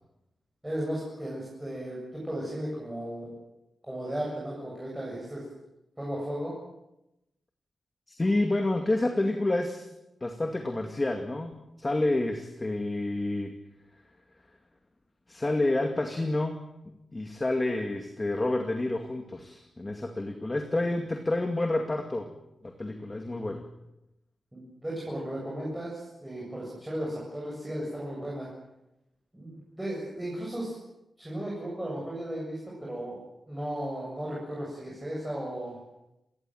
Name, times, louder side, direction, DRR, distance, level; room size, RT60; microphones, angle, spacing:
voice 1, 0.6-3.3 3.8-5.4 6.0-6.5 24.5-28.5 29.3-30.8 31.2-35.8, right 1 dB, 10° right, -4 dB, 7.9 m, -35 dB
voice 2, 8.1-9.9 10.2-11.5 11.8-13.5 15.3-16.6 17.1-22.3 22.6-23.6, left 2 dB, 20° left, 4 dB, 2.2 m, -29 dB
28.5 x 19.0 x 7.8 m, 0.91 s
wide cardioid pair, 155°, 0 cm